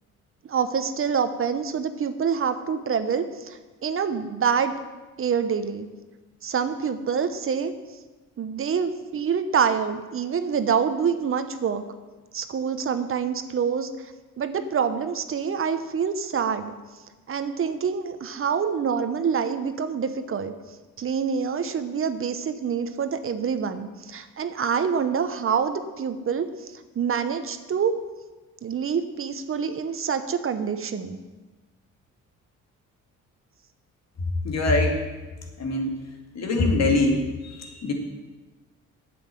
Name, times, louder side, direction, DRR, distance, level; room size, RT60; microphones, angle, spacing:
voice 1, 0.5-4.7 5.2-5.9 6.4-7.7 8.4-11.8 12.3-13.9 14.4-16.7 17.3-20.5 21.0-26.5 26.9-28.0 28.6-31.2, right 6 dB, 45° right, 10 dB, 0.9 m, -26 dB
voice 2, 34.4-35.0 35.6-36.0 36.3-37.9, left 2 dB, 60° left, 3 dB, 2.3 m, -23 dB
8.9 x 7.8 x 7.6 m, 1.2 s
cardioid pair, 90°, 30 cm